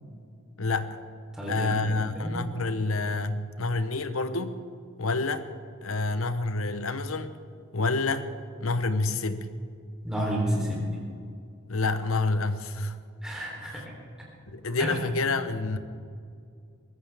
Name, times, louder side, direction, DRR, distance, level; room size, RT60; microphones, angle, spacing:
voice 1, 0.6-1.0 1.5-4.6 5.0-5.4 5.8-7.3 7.7-8.3 8.6-9.5 11.7-13.0 14.5-15.8, left 3 dB, 80° left, 11 dB, 0.9 m, -28 dB
voice 2, 1.3-2.4 10.0-10.9 13.2-13.8 14.8-15.1, right 1 dB, 5° right, -4 dB, 3.5 m, -30 dB
23.0 x 15.0 x 3.5 m, 2.3 s
head